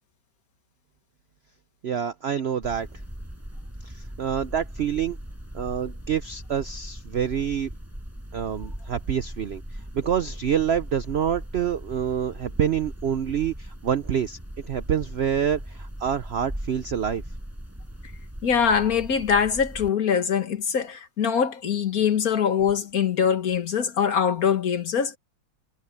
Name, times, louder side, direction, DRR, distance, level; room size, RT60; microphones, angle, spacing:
voice 1, 1.8-2.9 3.8-5.2 5.5-7.7 8.3-9.6 9.9-14.4 14.6-17.2, right 8 dB, 70° right, 0.6 m, -27 dB
sound 1, 2.6-19.9, equal, 10° right, 5.6 m, -39 dB
voice 2, 18.4-25.2, left 7 dB, 55° left, 1.8 m, -23 dB
omnidirectional pair, 1.9 m